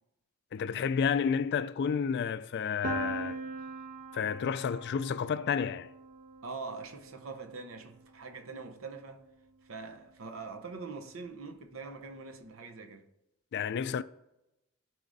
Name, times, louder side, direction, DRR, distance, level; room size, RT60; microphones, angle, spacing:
voice 1, 0.5-3.4 4.1-5.9 13.5-14.0, left 7 dB, 50° left, 0.3 m, -30 dB
Piano, 2.8-8.6, right 3 dB, 40° right, 0.4 m, -42 dB
voice 2, 6.4-9.3 9.6-13.1, right 4 dB, 70° right, 0.8 m, -43 dB
13.5 x 4.9 x 2.6 m
head